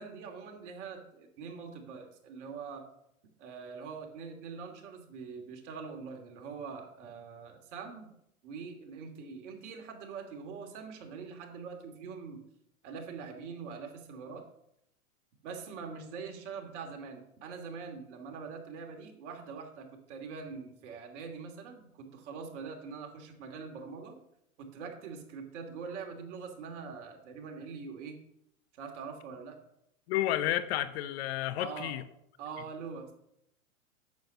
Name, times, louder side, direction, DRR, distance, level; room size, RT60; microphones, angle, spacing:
voice 1, 0.0-2.9 3.4-8.2 8.4-12.4 12.8-14.5 15.4-24.2 24.6-28.2 28.7-29.6 31.6-32.0 32.4-33.1, right 5 dB, 55° right, 3 dB, 2.8 m, -43 dB
voice 2, 30.1-32.0, left 13 dB, 50° left, 13 dB, 0.9 m, -31 dB
9.3 x 7.4 x 6.7 m, 0.77 s
hypercardioid pair, 120°, 42 cm